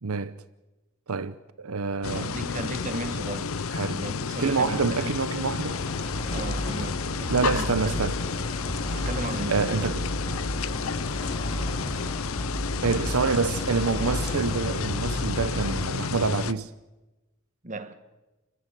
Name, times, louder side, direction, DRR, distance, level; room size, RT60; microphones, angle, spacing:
voice 1, 0.0-0.4 1.1-2.3 3.7-4.0 4.4-5.8 7.3-8.2 9.5-10.0 12.8-16.7, right 4 dB, 85° right, 0.8 m, -27 dB
sound 1, 2.0-16.5, left 5 dB, 70° left, 0.7 m, -31 dB
voice 2, 2.1-3.6 3.9-5.2 6.3-8.1 8.9-9.9 17.6-17.9, right 2 dB, 35° right, 1.7 m, -36 dB
sound 2, 5.7-15.8, equal, 25° left, 3.4 m, -33 dB
29.0 x 14.5 x 9.0 m
head